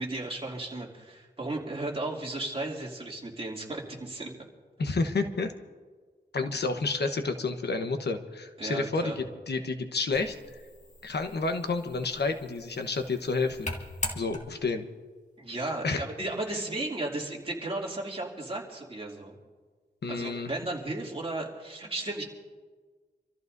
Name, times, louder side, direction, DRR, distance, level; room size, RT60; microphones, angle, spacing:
voice 1, 0.0-4.3 8.6-9.2 15.4-19.4 20.1-22.2, right 2 dB, 30° right, -2 dB, 2.7 m, -35 dB
voice 2, 4.8-5.5 6.3-10.3 11.0-13.7 14.1-14.9 15.8-16.0 20.0-20.5, left 3 dB, 70° left, 6 dB, 1.1 m, -30 dB
sound 1, 10.1-14.8, left 2 dB, 40° left, 1.9 m, -41 dB
27.5 x 14.0 x 2.7 m, 1.5 s
wide cardioid pair, 95°, 18 cm